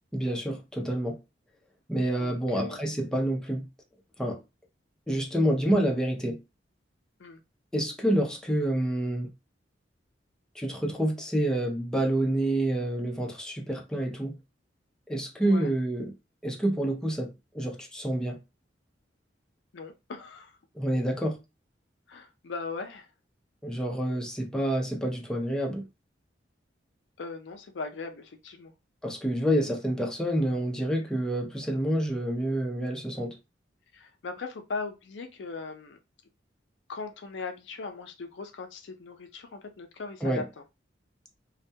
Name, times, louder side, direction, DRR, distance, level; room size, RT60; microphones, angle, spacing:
voice 1, 0.1-1.2 1.9-3.7 4.2-4.4 5.1-6.4 7.7-9.3 10.6-14.3 15.1-16.1 16.4-18.4 20.7-21.4 23.6-25.9 29.0-33.4 40.2-40.4, right 1 dB, 5° left, 0.5 m, -28 dB
voice 2, 2.2-2.9 7.2-7.4 15.4-15.7 19.7-20.6 22.1-23.1 27.2-28.7 33.9-36.0 36.9-40.4, left 4 dB, 70° left, 0.4 m, -39 dB
2.2 x 2.1 x 2.7 m
head